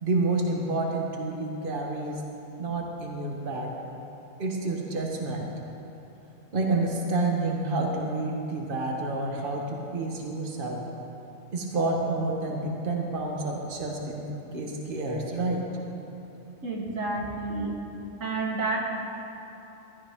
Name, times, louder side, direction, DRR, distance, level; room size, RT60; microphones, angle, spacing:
voice 1, 0.0-2.2 2.6-3.7 4.4-5.5 6.5-10.8 11.5-14.2 14.5-15.6, right 2 dB, 45° right, 0 dB, 1.5 m, -29 dB
voice 2, 16.6-17.8 18.2-18.8, right 3 dB, 90° right, -1 dB, 1.8 m, -30 dB
15.5 x 13.0 x 3.6 m, 2.9 s
omnidirectional pair, 1.3 m